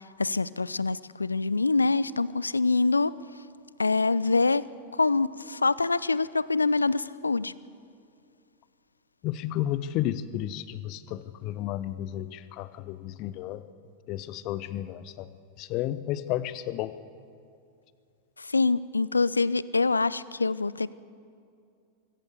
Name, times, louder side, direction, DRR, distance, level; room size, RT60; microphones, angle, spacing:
voice 1, 0.0-3.1 3.8-4.7 4.9-7.5 18.4-20.9, left 3 dB, 80° left, 20 dB, 0.4 m, -25 dB
voice 2, 9.2-13.6 14.1-15.3 15.6-16.9, left 13 dB, 40° left, 15 dB, 0.8 m, -32 dB
24.0 x 16.5 x 7.0 m, 2.4 s
figure-of-eight pair, 90°, 0 cm